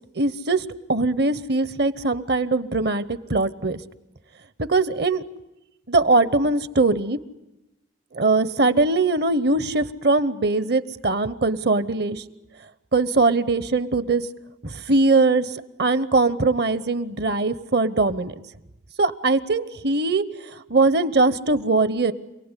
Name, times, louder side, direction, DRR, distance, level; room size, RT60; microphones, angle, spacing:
voice 1, 0.1-3.8 4.6-5.2 5.9-7.2 8.1-12.2 12.9-14.2 14.6-15.5 15.8-18.3 19.0-22.1, right 3 dB, 55° right, 15 dB, 1.0 m, -21 dB
27.5 x 18.5 x 9.9 m, 0.94 s
head